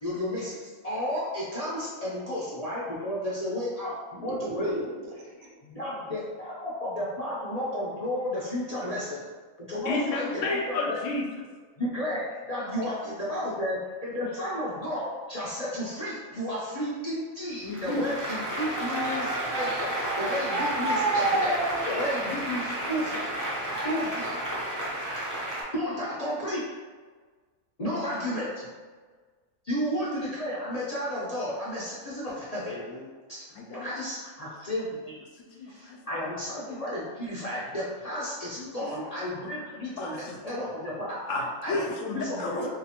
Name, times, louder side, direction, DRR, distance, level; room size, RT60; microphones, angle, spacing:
voice 1, 0.0-4.7 5.6-9.2 9.6-10.4 10.7-11.0 11.8-23.3 23.8-24.4 25.7-26.6 27.8-28.6 29.6-33.4 33.7-35.3 35.7-41.2 41.6-41.8 42.1-42.7, left 1 dB, 45° left, -8 dB, 0.5 m, -32 dB
voice 2, 4.3-6.1 8.8-8.9 12.8-12.9 24.5-24.8 26.3-26.5, right 2 dB, 80° right, -1 dB, 1.1 m, -40 dB
voice 3, 9.8-11.2 17.6-18.1 33.6-34.0 35.4-36.0 38.6-38.7 39.1-39.2 40.0-40.6 41.3-42.7, left 3 dB, 70° left, 0 dB, 0.9 m, -32 dB
Applause, 17.7-25.6, right 1 dB, 20° right, 0.5 m, -29 dB
3.1 x 2.8 x 2.9 m, 1.4 s
omnidirectional pair, 1.4 m